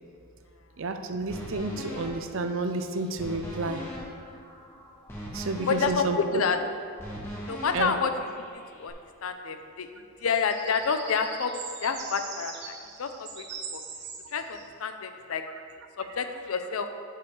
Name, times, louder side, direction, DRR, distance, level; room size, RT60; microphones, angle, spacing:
voice 1, 0.8-3.8 5.3-6.4 7.7-7.9, right 3 dB, 70° right, 8 dB, 0.5 m, -30 dB
sound 1, 1.3-8.9, equal, 10° left, 1.1 m, -41 dB
sound 2, 3.9-4.0 4.3-4.4 10.1-14.7, right 5 dB, 50° right, 0.9 m, -42 dB
voice 2, 5.7-6.6 7.5-8.4 8.8-8.9 9.2-9.9 10.2-11.5 11.8-13.5 13.7-13.8 14.3-15.4 16.0-16.9, left 5 dB, 80° left, 8 dB, 0.5 m, -28 dB
5.5 x 5.3 x 6.4 m, 2.3 s
head